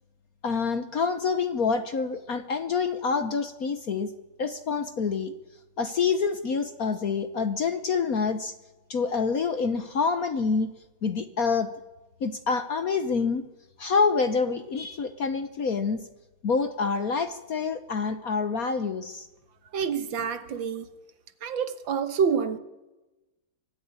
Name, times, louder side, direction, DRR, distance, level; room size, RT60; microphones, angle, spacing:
voice 1, 0.4-4.1 4.4-5.3 5.8-8.5 8.9-10.7 11.0-11.7 12.2-13.4 13.8-16.0 16.4-19.3, left 5 dB, 50° left, 1.2 m, -27 dB
voice 2, 19.7-20.9 21.4-22.6, right 6 dB, 65° right, 1.9 m, -27 dB
24.0 x 14.5 x 9.5 m
omnidirectional pair, 2.4 m